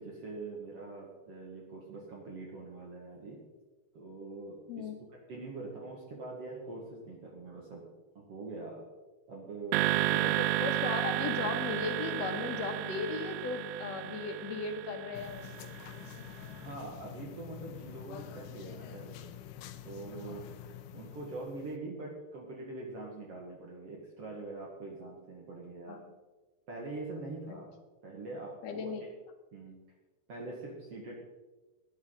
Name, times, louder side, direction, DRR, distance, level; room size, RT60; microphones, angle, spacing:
voice 1, 0.0-3.4 3.9-4.9 5.3-8.9 9.3-10.3 16.5-19.3 19.8-20.5 20.9-26.0 26.7-27.8 28.0-29.1 29.5-29.8 30.3-31.2, right 2 dB, 50° right, -2 dB, 2.5 m, -43 dB
sound 1, 9.7-16.1, right 13 dB, 85° right, 2.2 m, -32 dB
voice 2, 10.2-15.7 25.9-26.1 27.5-27.6 28.6-29.1, left 5 dB, 60° left, 5 dB, 2.3 m, -37 dB
sound 2, 15.1-21.8, left 10 dB, 80° left, 2.2 m, -47 dB
18.0 x 10.5 x 3.9 m, 1.2 s
omnidirectional pair, 3.7 m